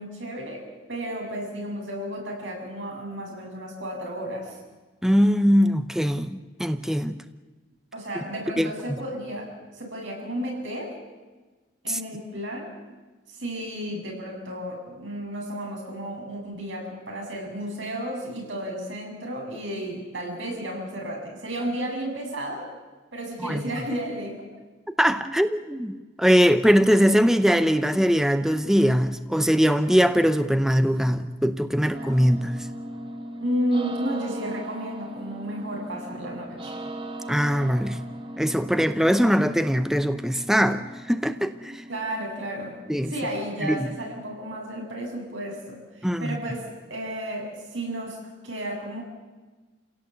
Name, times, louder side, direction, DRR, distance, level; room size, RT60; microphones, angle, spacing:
voice 1, 0.0-4.6 7.9-11.0 11.8-12.7 13.3-22.7 23.1-24.5 33.4-36.8 41.9-42.8 43.1-49.0, right 1 dB, 90° right, 0 dB, 7.3 m, -33 dB
voice 2, 5.0-7.1 8.6-9.0 11.9-12.0 23.4-23.6 25.0-32.5 37.3-38.0 38.4-41.8 42.9-43.1 43.6-43.9 46.0-46.4, equal, 5° right, 10 dB, 0.8 m, -21 dB
sound 1, 31.9-45.8, right 1 dB, 30° right, 1.5 m, -39 dB
28.5 x 17.5 x 8.1 m, 1.3 s
head